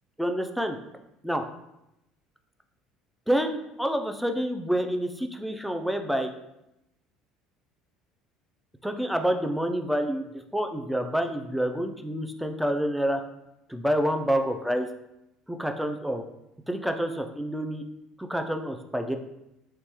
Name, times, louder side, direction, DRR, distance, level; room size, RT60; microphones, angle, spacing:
voice 1, 0.2-0.8 1.2-1.4 3.3-6.3 8.8-13.2 13.7-14.9 15.5-16.2 16.7-17.8 18.2-19.2, equal, ahead, 5 dB, 0.3 m, -28 dB
3.1 x 2.2 x 2.9 m, 0.87 s
hypercardioid pair, 75°, 0 cm